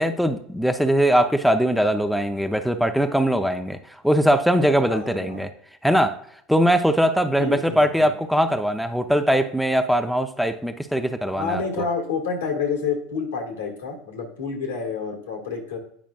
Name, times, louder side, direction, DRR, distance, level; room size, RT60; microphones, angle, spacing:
voice 1, 0.0-5.5 5.8-6.2 6.5-11.6, equal, ahead, 7 dB, 0.5 m, -21 dB
voice 2, 4.9-5.4 7.4-8.1 11.3-15.8, left 5 dB, 80° left, 3 dB, 1.6 m, -28 dB
8.7 x 5.1 x 2.3 m, 0.66 s
hypercardioid pair, 80°, 0 cm